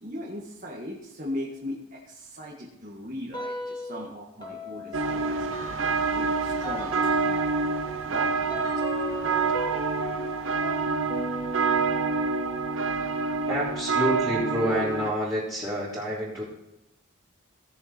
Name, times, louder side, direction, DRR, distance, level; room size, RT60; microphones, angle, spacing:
voice 1, 0.0-5.5 6.1-7.8 8.0-8.7, equal, 40° right, -3 dB, 1.9 m, -38 dB
sound 1, 3.3-4.1 4.4-14.7, equal, 20° left, 2.1 m, -39 dB
sound 2, 4.9-15.1, right 4 dB, 65° right, 0.8 m, -27 dB
sound 3, 6.8-7.8, right 7 dB, 90° right, 3.4 m, -47 dB
voice 2, 13.5-16.5, equal, 15° right, -12 dB, 3.6 m, -28 dB
18.0 x 7.0 x 4.4 m, 0.90 s
head